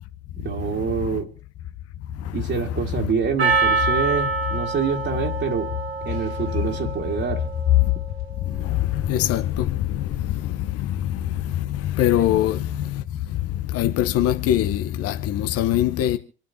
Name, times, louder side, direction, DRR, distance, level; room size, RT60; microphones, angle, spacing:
voice 1, 0.4-1.3 2.3-5.7 6.0-7.4, right 5 dB, 40° right, 2.1 m, -26 dB
Percussion, 3.4-8.0, right 4 dB, 90° right, 2.2 m, -26 dB
voice 2, 9.1-9.7 12.0-12.6 13.7-16.2, left 12 dB, 50° left, 0.9 m, -21 dB
27.5 x 9.6 x 2.8 m
figure-of-eight pair, 60°, 31 cm